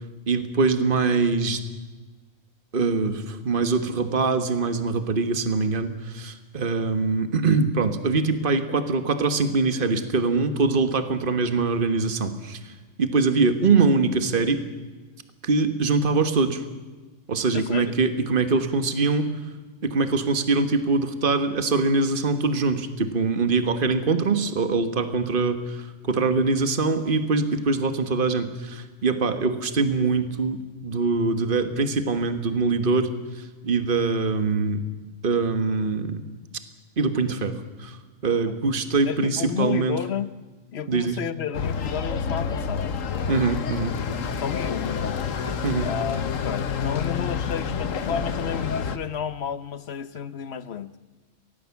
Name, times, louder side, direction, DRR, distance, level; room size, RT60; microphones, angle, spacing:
voice 1, 0.3-1.6 2.7-12.7 13.0-14.6 15.4-16.6 17.3-19.3 19.8-34.8 35.2-36.2 37.0-37.5 37.8-38.0 38.2-40.0 40.9-41.2 43.3-43.9 45.6-45.9, right 4 dB, 45° right, 9 dB, 1.6 m, -23 dB
voice 2, 17.5-18.0 39.1-40.3 40.7-42.9 44.4-45.2 45.8-50.9, left 8 dB, 55° left, 15 dB, 1.1 m, -31 dB
sound 1, 41.5-49.0, left 6 dB, 80° left, 1.5 m, -28 dB
23.5 x 18.5 x 7.2 m, 1.3 s
omnidirectional pair, 1.3 m